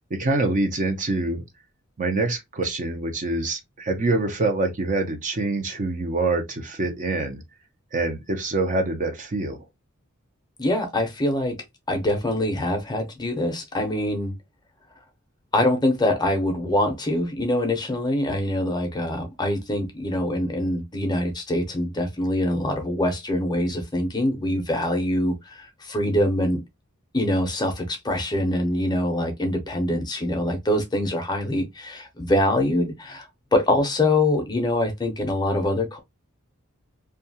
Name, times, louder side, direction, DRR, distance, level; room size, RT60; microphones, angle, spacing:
voice 1, 0.1-1.4 2.0-7.4 7.9-9.6, right 2 dB, 40° right, 0.5 m, -25 dB
voice 2, 10.6-11.6 11.9-14.3 15.5-26.6 27.1-36.0, left 1 dB, 20° left, 0.6 m, -24 dB
2.7 x 2.3 x 2.6 m
head